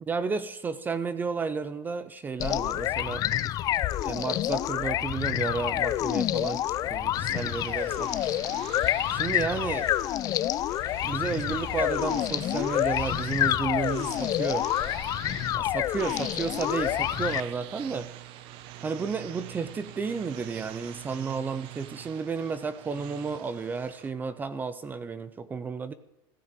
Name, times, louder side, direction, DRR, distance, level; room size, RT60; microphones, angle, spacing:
voice 1, 0.1-3.2 4.0-6.6 6.9-8.4 9.1-9.9 11.0-14.7 15.5-18.1 18.8-25.9, right 5 dB, 15° right, 14 dB, 0.6 m, -32 dB
sound 1, 2.4-17.4, left 13 dB, 30° left, 0.5 m, -28 dB
sound 2, 5.4-24.1, right 13 dB, 45° right, 1.1 m, -45 dB
15.5 x 7.3 x 9.1 m, 0.90 s
supercardioid pair, 155°, 12 cm